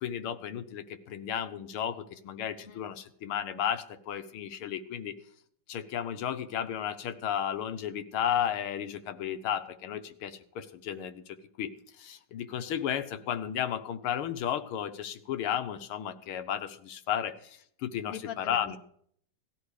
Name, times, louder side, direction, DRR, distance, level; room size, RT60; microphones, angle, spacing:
voice 1, 0.0-5.2 5.7-11.7 12.0-18.8, left 9 dB, 80° left, 9 dB, 1.8 m, -33 dB
voice 2, 18.1-18.8, left 8 dB, 40° left, 7 dB, 1.0 m, -43 dB
17.5 x 12.5 x 4.9 m, 0.63 s
omnidirectional pair, 2.4 m